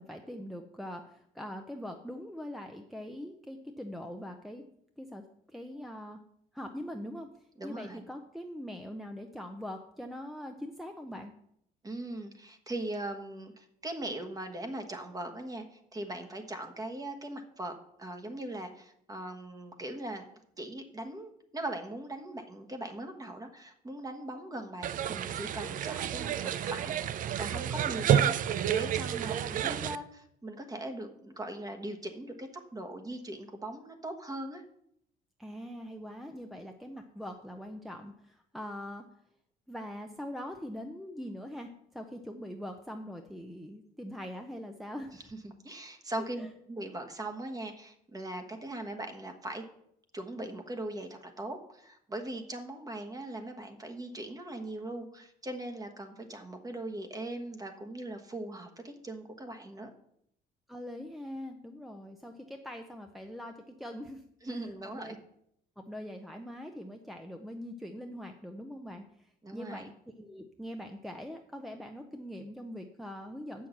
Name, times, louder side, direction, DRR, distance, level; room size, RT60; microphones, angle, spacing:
voice 1, 0.0-4.6 5.0-6.2 6.5-7.3 7.6-11.3 35.4-39.0 39.7-45.2 46.4-46.5 60.7-64.2 64.5-64.6 64.9-65.1 65.8-73.7, equal, ahead, 5 dB, 0.7 m, -42 dB
voice 2, 7.6-8.0 11.8-20.3 20.6-34.6 45.1-49.6 50.1-59.9 64.4-65.2 69.4-69.9, right 1 dB, 20° right, 6 dB, 1.3 m, -40 dB
sound 1, 24.8-30.0, right 10 dB, 50° right, 0.5 m, -30 dB
7.5 x 6.3 x 7.1 m, 0.73 s
cardioid pair, 110°, 17 cm